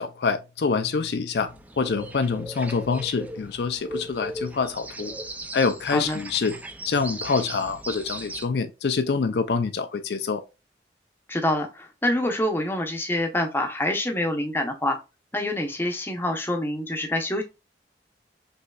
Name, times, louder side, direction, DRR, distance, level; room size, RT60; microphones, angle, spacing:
voice 1, 0.0-1.5 1.8-5.1 5.5-6.5 6.8-10.4, left 5 dB, 70° left, 0.4 m, -26 dB
sound 1, 1.3-8.5, right 1 dB, 10° right, 0.3 m, -38 dB
voice 2, 5.9-6.2 11.3-15.0 15.3-17.4, left 1 dB, 15° left, 0.7 m, -26 dB
5.3 x 3.1 x 2.3 m
head